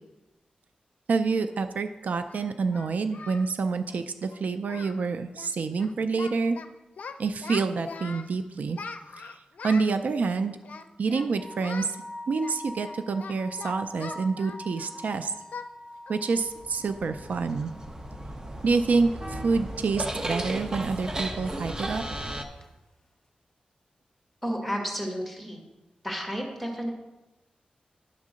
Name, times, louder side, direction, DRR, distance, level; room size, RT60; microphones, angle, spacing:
voice 1, 1.1-6.6 7.2-8.8 9.2-9.4 9.6-10.6 11.0-12.0 12.3-15.3 16.1-17.7 18.6-22.0, right 4 dB, 70° right, 9 dB, 0.4 m, -27 dB
Singing, 1.5-1.6 2.3-3.5 3.8-4.0 4.3-4.4 4.6-5.0 5.3-5.5 5.8-6.7 7.0-8.3 8.7-9.9 10.6-11.3 11.6-11.9 12.4-15.0 15.5-15.7 16.1-16.2 16.7-16.8 17.2-17.5, left 4 dB, 70° left, 0.5 m, -41 dB
sound 1, 11.4-19.1 19.3-19.4 22.6-22.7, left 1 dB, 25° left, 1.0 m, -44 dB
sound 2, 16.4-22.4, right 1 dB, 25° right, 0.7 m, -35 dB
voice 2, 24.4-25.6 26.0-26.9, equal, ahead, 0 dB, 1.6 m, -31 dB
10.5 x 3.7 x 6.2 m, 1.0 s
wide cardioid pair, 155°, 3 cm